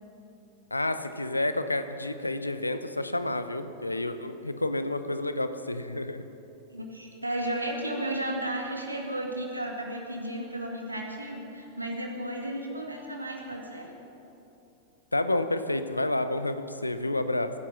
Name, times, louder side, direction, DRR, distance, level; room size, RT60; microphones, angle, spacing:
voice 1, 0.7-6.2 15.1-17.5, left 2 dB, 85° left, 10 dB, 0.8 m, -29 dB
voice 2, 6.7-13.9, right 1 dB, 85° right, 1 dB, 2.2 m, -34 dB
20.5 x 10.5 x 6.0 m, 2.9 s
figure-of-eight pair, 90°, 0 cm